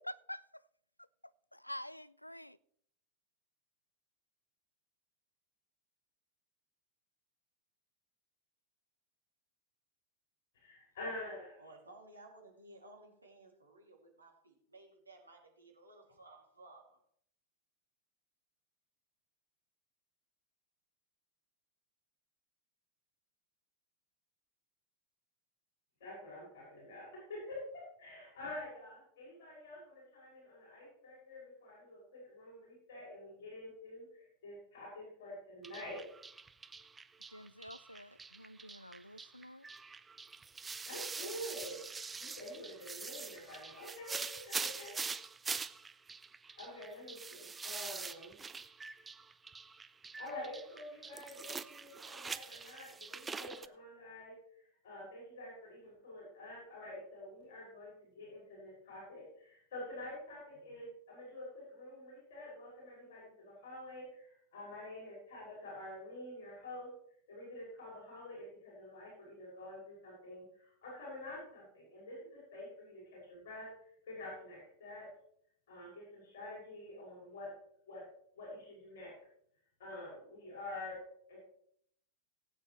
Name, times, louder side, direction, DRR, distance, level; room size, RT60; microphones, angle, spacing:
voice 1, 0.1-0.4 1.5-2.6 37.3-39.7, left 1 dB, 85° left, 0.3 m, -47 dB
voice 2, 10.5-11.6 26.0-36.1 40.8-41.8 42.2-45.0 46.5-48.4 50.2-66.9 67.3-75.1 75.7-77.5 77.9-78.1 78.3-79.2 79.8-81.4, left 1 dB, 55° left, 6.0 m, -48 dB
voice 3, 11.6-17.0, right 2 dB, 80° right, 2.5 m, -57 dB
sound 1, 35.6-53.7, right 4 dB, 15° right, 0.5 m, -44 dB
18.5 x 8.6 x 3.1 m
figure-of-eight pair, 90°, 0 cm